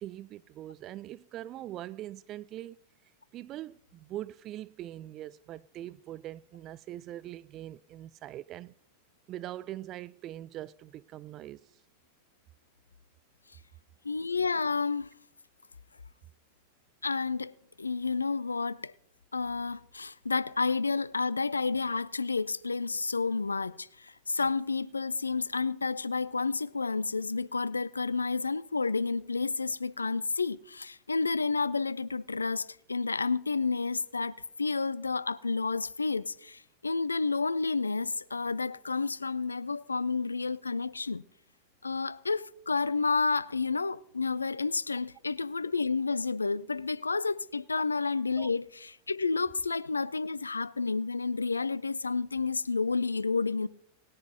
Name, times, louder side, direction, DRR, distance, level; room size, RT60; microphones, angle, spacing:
voice 1, 0.0-2.8 3.3-8.7 9.3-11.7 48.4-48.5, right 13 dB, 35° right, 0.3 m, -42 dB
voice 2, 14.0-15.2 17.0-18.9 19.3-41.2 41.8-53.7, left 4 dB, 80° left, 0.3 m, -30 dB
19.0 x 9.9 x 2.8 m
figure-of-eight pair, 90°, 0 cm